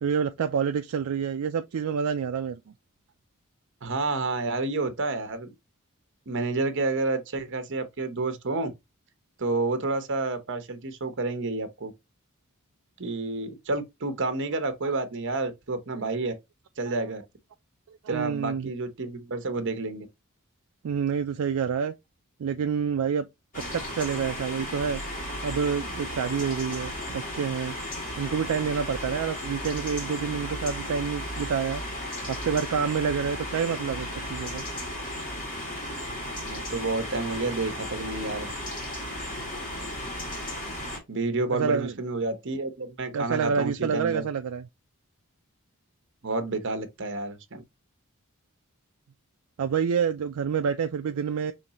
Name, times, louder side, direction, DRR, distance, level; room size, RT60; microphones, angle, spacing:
voice 1, 0.0-2.6 15.9-16.1 16.9-17.1 17.9-18.7 20.8-21.9 22.4-23.3 23.5-25.0 25.4-27.8 28.2-31.9 32.2-34.6 41.5-41.9 43.1-44.7 49.6-51.5, right 6 dB, 75° right, 0.4 m, -28 dB
voice 2, 3.8-5.5 6.3-8.7 9.4-11.9 13.0-16.3 16.8-17.2 18.1-20.1 36.4-38.5 41.1-44.2 46.2-47.6, right 3 dB, 60° right, 0.9 m, -29 dB
sound 1, 23.5-41.0, left 1 dB, 40° left, 1.9 m, -35 dB
5.2 x 3.2 x 2.9 m
head